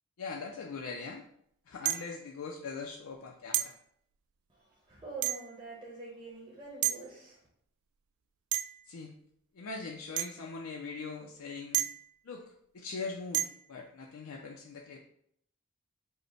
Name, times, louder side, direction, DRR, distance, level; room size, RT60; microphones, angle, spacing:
voice 1, 0.2-1.3 1.7-3.7 8.9-9.1 9.5-11.9 12.2-12.4 12.7-15.0, left 4 dB, 75° left, 1 dB, 0.4 m, -41 dB
sound 1, 1.9-2.2 3.5-3.8 5.2-5.6 6.8-7.0 8.5-8.9 10.2-10.4 11.7-12.1 13.3-13.7, right 13 dB, 70° right, 0.3 m, -32 dB
voice 2, 4.5-7.4, right 2 dB, 25° right, -6 dB, 0.9 m, -46 dB
5.2 x 2.1 x 4.4 m, 0.70 s
head